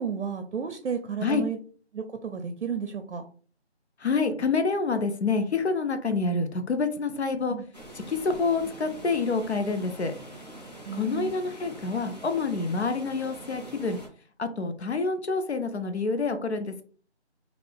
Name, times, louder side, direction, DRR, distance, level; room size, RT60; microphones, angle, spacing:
voice 1, 0.0-1.6 1.9-3.2 7.5-7.7 10.8-11.3, right 6 dB, 75° right, 5 dB, 0.5 m, -32 dB
voice 2, 4.0-7.6 8.1-10.1 11.0-14.0 14.4-16.8, left 4 dB, 70° left, 9 dB, 0.6 m, -27 dB
Water, 7.7-14.1, right 1 dB, 35° left, 0.8 m, -44 dB
2.4 x 2.3 x 3.4 m, 0.42 s
figure-of-eight pair, 170°, 34 cm